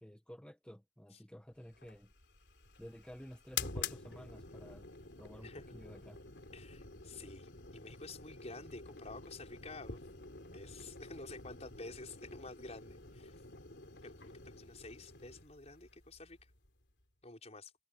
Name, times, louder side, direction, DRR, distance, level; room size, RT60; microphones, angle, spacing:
voice 1, 0.0-2.1 2.8-4.9 5.2-6.2, equal, 5° left, 1.5 m, -52 dB
sound 1, 1.7-17.0, left 5 dB, 80° left, 3.8 m, -48 dB
voice 2, 6.5-10.0 10.5-13.4 14.0-16.4 17.2-17.7, left 3 dB, 40° left, 5.5 m, -50 dB
head